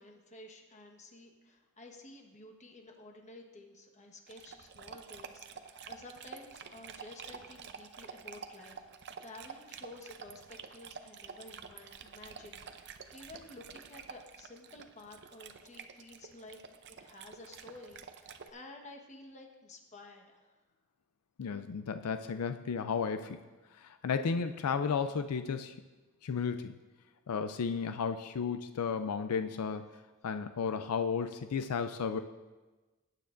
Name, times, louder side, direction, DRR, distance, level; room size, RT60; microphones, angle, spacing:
voice 1, 0.0-16.6 16.9-20.6 23.7-23.9, left 2 dB, 35° left, 2 dB, 1.3 m, -52 dB
Dog, 4.3-18.5, right 6 dB, 50° right, 0.6 m, -49 dB
voice 2, 21.4-23.4 23.8-25.7 26.2-26.8 27.3-29.9 30.2-32.2, left 6 dB, 90° left, 9 dB, 0.4 m, -33 dB
18.5 x 9.4 x 2.5 m, 1.2 s
head